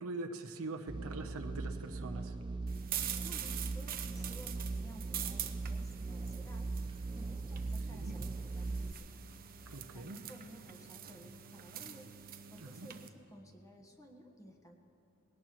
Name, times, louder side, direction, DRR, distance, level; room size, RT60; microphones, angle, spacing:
voice 1, 0.0-2.3 7.9-8.1 9.7-10.2 12.6-12.9, right 2 dB, 70° right, 5 dB, 0.9 m, -43 dB
sound 1, 0.9-8.9, right 3 dB, 20° right, 0.3 m, -40 dB
sound 2, 2.7-13.1, right 10 dB, 40° right, 0.7 m, -45 dB
voice 2, 3.2-9.2 9.6-14.7, equal, 15° left, 2 dB, 1.4 m, -55 dB
20.5 x 18.0 x 3.1 m, 2.7 s
head